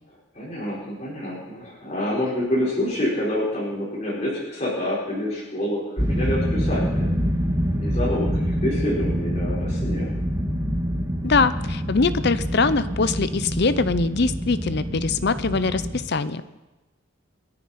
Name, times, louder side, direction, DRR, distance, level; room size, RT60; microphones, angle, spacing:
voice 1, 0.3-7.1 7.8-10.1, left 1 dB, 35° left, -7 dB, 4.7 m, -27 dB
sound 1, 6.0-16.0, equal, 15° right, 1.7 m, -26 dB
voice 2, 11.2-16.5, left 4 dB, 55° left, 14 dB, 0.7 m, -23 dB
28.5 x 9.9 x 4.3 m, 1.1 s
head